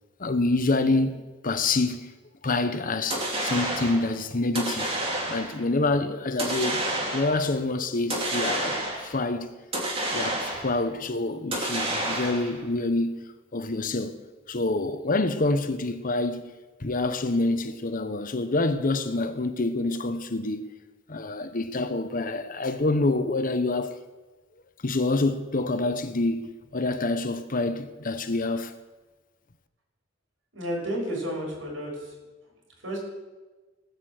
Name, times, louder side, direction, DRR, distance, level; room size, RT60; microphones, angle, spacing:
voice 1, 0.2-2.1 2.4-4.9 5.3-6.9 7.1-9.5 10.1-13.2 13.5-14.2 14.5-16.5 16.8-20.7 21.1-24.0 24.8-28.7, left 2 dB, 45° left, 0.9 m, -27 dB
sound 1, 3.1-4.1 4.5-5.6 6.4-7.4 8.1-9.2 9.7-10.8 11.5-12.6, right 1 dB, 30° right, 2.9 m, -29 dB
voice 2, 30.5-32.1 32.8-33.0, equal, 90° right, 6.1 m, -31 dB
18.0 x 6.6 x 7.8 m
head